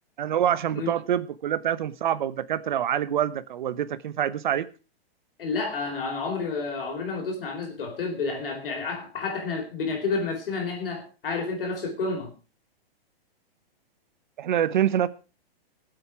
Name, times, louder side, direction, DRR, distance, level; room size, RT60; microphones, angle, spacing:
voice 1, 0.2-4.7 14.4-15.1, right 10 dB, 50° right, 1.0 m, -26 dB
voice 2, 5.4-12.3, left 4 dB, 65° left, 4.4 m, -30 dB
20.5 x 8.0 x 4.8 m
hypercardioid pair, 180°, 30 cm